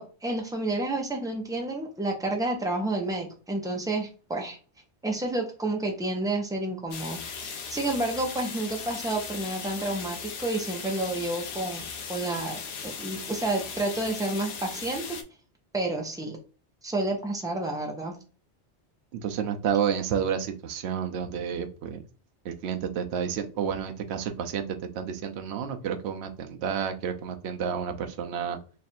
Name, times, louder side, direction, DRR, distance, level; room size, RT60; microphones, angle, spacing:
voice 1, 0.0-4.6 5.0-15.2 15.7-16.4 16.8-18.1, right 2 dB, 5° right, 1 dB, 0.6 m, -30 dB
sound 1, 6.9-15.2, left 6 dB, 65° left, 0.8 m, -38 dB
voice 2, 19.1-22.0 22.4-24.7 24.9-28.6, right 8 dB, 70° right, 6 dB, 0.8 m, -30 dB
3.2 x 2.5 x 4.2 m, 0.36 s
omnidirectional pair, 1.2 m